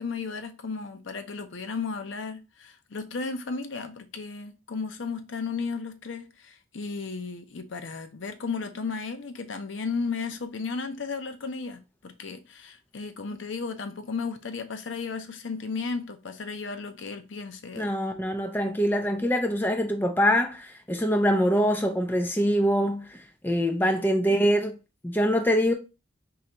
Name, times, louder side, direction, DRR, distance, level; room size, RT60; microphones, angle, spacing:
voice 1, 0.0-17.9 23.8-24.4, left 4 dB, 75° left, 0.6 m, -34 dB
voice 2, 17.7-24.8 25.0-25.7, equal, 10° left, 0.4 m, -24 dB
3.9 x 3.3 x 2.9 m
head